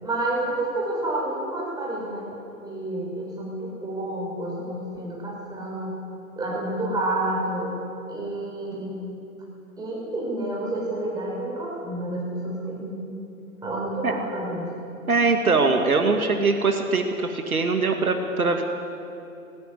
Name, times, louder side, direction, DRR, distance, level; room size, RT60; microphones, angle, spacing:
voice 1, 0.0-2.3 2.6-6.0 6.4-7.8 8.1-9.0 9.8-13.0 13.6-14.7, right 1 dB, 10° right, -4 dB, 6.3 m, -29 dB
voice 2, 15.1-18.6, right 3 dB, 75° right, 4 dB, 2.1 m, -22 dB
19.0 x 16.0 x 9.5 m, 2.8 s
figure-of-eight pair, 120°, 44 cm